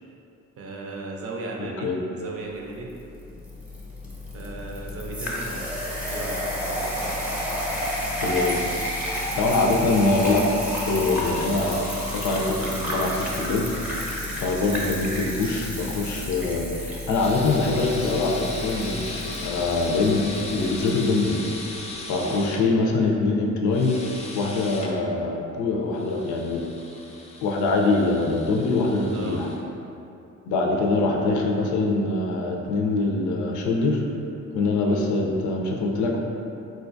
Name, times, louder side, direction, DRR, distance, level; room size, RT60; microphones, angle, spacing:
voice 1, 0.6-2.9 4.3-5.7 6.1-6.9 14.6-14.8 18.0-18.2 22.2-22.4 29.1-29.4 34.8-35.0, right 3 dB, 50° right, -1 dB, 0.6 m, -36 dB
voice 2, 1.6-2.0 8.2-8.6 9.0-10.5 10.9-13.8 14.4-21.4 22.1-24.0 24.3-26.6 27.4-29.5 30.4-34.0 34.5-36.2, left 3 dB, 75° left, 1 dB, 0.5 m, -24 dB
sound 1, 2.9-21.0, left 1 dB, 5° right, 0.7 m, -31 dB
sound 2, 11.0-16.3 17.1-22.6 23.7-24.9 25.9-29.6, left 2 dB, 20° left, 0.4 m, -39 dB
3.9 x 2.3 x 2.5 m, 2.7 s
cardioid pair, 90°, 30 cm